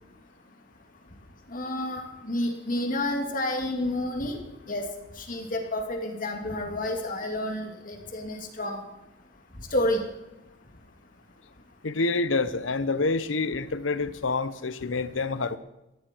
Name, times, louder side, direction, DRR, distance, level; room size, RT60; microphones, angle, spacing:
voice 1, 1.5-4.4 4.7-4.8 5.2-8.8 9.7-10.0, left 1 dB, 45° left, 3 dB, 2.6 m, -30 dB
voice 2, 11.8-15.6, left 3 dB, 90° left, 14 dB, 0.9 m, -27 dB
18.5 x 14.0 x 4.6 m, 0.96 s
head